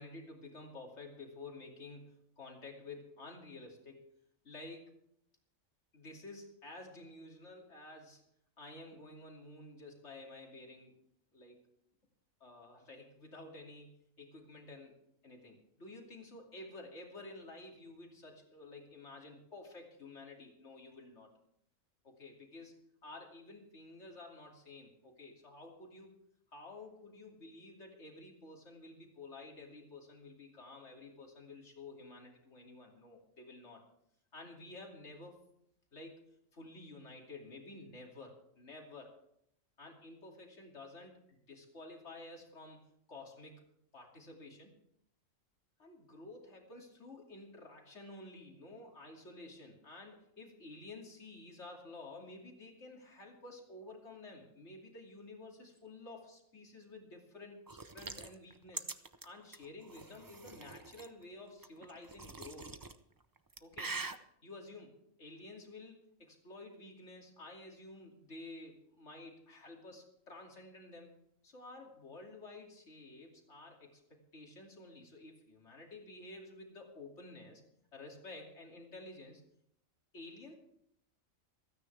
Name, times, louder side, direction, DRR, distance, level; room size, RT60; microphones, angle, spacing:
voice 1, 0.0-4.0 4.4-4.9 5.9-8.2 8.6-10.9 11.3-11.7 12.4-14.9 15.2-21.3 22.0-26.1 26.5-33.8 34.3-35.4 35.9-36.2 36.5-39.1 39.8-42.8 43.1-43.6 43.9-44.7 45.8-58.8 59.2-62.8 63.6-64.0 64.4-71.1 71.4-77.6 77.9-79.4 80.1-80.5, left 2 dB, 55° left, 0 dB, 3.0 m, -51 dB
sound 1, 57.7-61.1 61.6-62.9 63.4-64.2, right 3 dB, 25° right, 0.4 m, -44 dB
27.0 x 9.6 x 3.4 m, 0.74 s
omnidirectional pair, 1.4 m